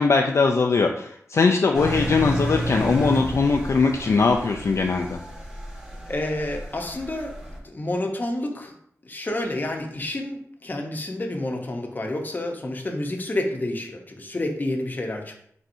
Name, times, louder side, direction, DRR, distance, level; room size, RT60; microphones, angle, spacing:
voice 1, 0.0-5.2, left 4 dB, 60° left, 2 dB, 0.3 m, -21 dB
Engine, 1.7-7.6, right 1 dB, 15° right, 1.2 m, -32 dB
voice 2, 6.1-7.4 7.6-8.7 9.0-15.4, left 1 dB, 35° left, 2 dB, 0.7 m, -29 dB
4.2 x 3.5 x 2.6 m, 0.67 s
wide cardioid pair, 80°, 5 cm